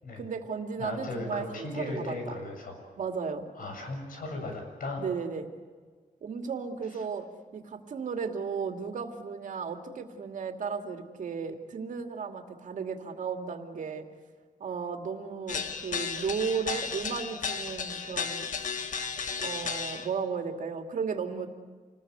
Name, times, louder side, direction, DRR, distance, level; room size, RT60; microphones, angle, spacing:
voice 1, 0.1-2.4 3.0-3.5 5.0-5.5 6.2-14.0 14.6-18.7 19.4-21.5, right 6 dB, 65° right, 5 dB, 2.6 m, -35 dB
voice 2, 0.8-2.8 3.6-5.0, left 2 dB, 80° left, 3 dB, 7.3 m, -36 dB
sound 1, 15.5-20.1, left 6 dB, 65° left, 1.8 m, -34 dB
28.5 x 20.0 x 8.2 m, 1.5 s
wide cardioid pair, 165°, 14 cm